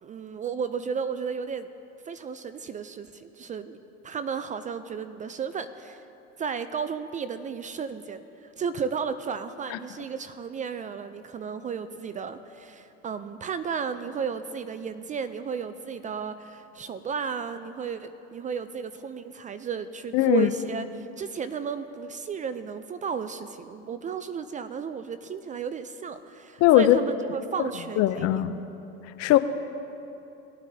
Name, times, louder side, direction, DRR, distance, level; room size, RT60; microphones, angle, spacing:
voice 1, 0.0-1.7 2.1-3.8 4.0-6.0 6.4-28.4, right 6 dB, 25° right, 12 dB, 0.3 m, -33 dB
voice 2, 20.1-20.5 26.6-27.0 28.0-28.6 29.2-29.4, left 14 dB, 50° left, 12 dB, 0.6 m, -19 dB
18.5 x 8.9 x 2.7 m, 2.9 s
hypercardioid pair, 90°, 33 cm